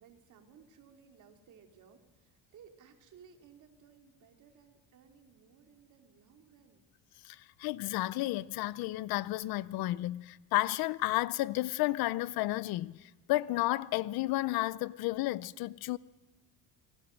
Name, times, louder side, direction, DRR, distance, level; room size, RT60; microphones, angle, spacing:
voice 1, 0.0-6.9, right 7 dB, 50° right, 2.8 m, -59 dB
voice 2, 7.2-16.0, left 17 dB, 70° left, 0.6 m, -32 dB
27.5 x 20.0 x 6.4 m
cardioid pair, 180°, 38 cm